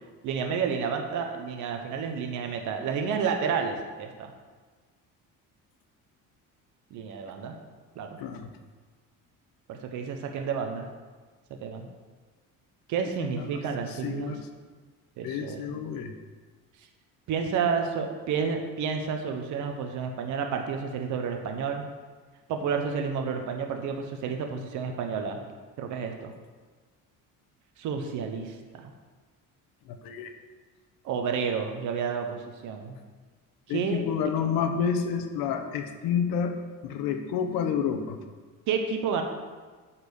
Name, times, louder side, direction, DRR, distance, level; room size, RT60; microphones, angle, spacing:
voice 1, 0.2-4.3 6.9-7.6 8.0-8.2 9.7-10.9 11.6-11.9 12.9-14.3 15.2-15.8 17.3-21.8 22.5-25.4 25.8-26.3 27.8-28.9 31.0-33.0 33.7-34.0 38.7-39.2, right 6 dB, 60° right, 4 dB, 1.0 m, -30 dB
voice 2, 8.2-8.5 13.4-13.6 13.9-14.4 15.2-16.1 29.9-30.3 33.7-36.5 36.8-38.2, left 7 dB, 80° left, 7 dB, 1.0 m, -29 dB
9.7 x 4.4 x 7.0 m, 1.4 s
cardioid pair, 175°, 34 cm